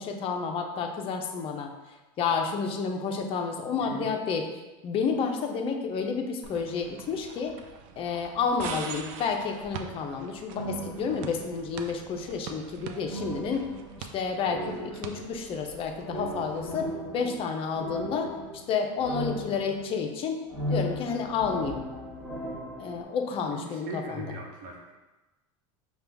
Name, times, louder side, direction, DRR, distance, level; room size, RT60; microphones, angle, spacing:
voice 1, 0.0-4.4 4.8-7.6 8.0-13.7 14.0-16.9 17.1-18.3 18.7-20.4 20.7-21.8 22.8-24.3, left 5 dB, 35° left, 3 dB, 0.5 m, -30 dB
voice 2, 3.8-4.1 23.5-23.6 23.9-24.9, right 2 dB, 50° right, -1 dB, 1.0 m, -39 dB
sound 1, 6.4-16.9, right 6 dB, 70° right, 0.5 m, -44 dB
sound 2, 10.5-11.7 13.0-15.5 16.0-20.1 20.5-23.0, equal, ahead, 1.3 m, -37 dB
5.4 x 2.3 x 3.3 m, 1.1 s
supercardioid pair, 140°, 17 cm